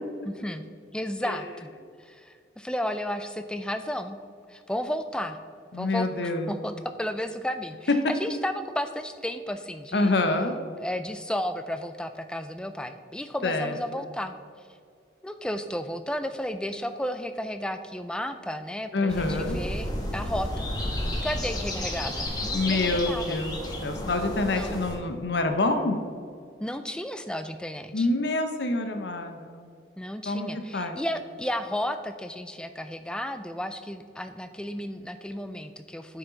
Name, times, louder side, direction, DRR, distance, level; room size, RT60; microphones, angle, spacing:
voice 1, 0.2-0.6 0.9-1.7 2.0-4.2 4.5-5.4 5.7-10.1 10.8-14.3 15.2-20.7 21.1-23.4 24.5-24.8 26.6-28.1 30.0-36.2, equal, 5° left, 9 dB, 0.3 m, -33 dB
voice 2, 5.7-6.5 7.9-8.0 9.9-10.5 13.4-13.7 18.9-19.6 22.5-23.5 23.8-26.0 27.9-29.7 30.3-30.5 30.7-31.0, left 2 dB, 70° left, 6 dB, 0.8 m, -26 dB
sound 1, 19.1-25.0, left 1 dB, 20° left, 1.1 m, -32 dB
9.4 x 5.7 x 3.9 m, 2.3 s
head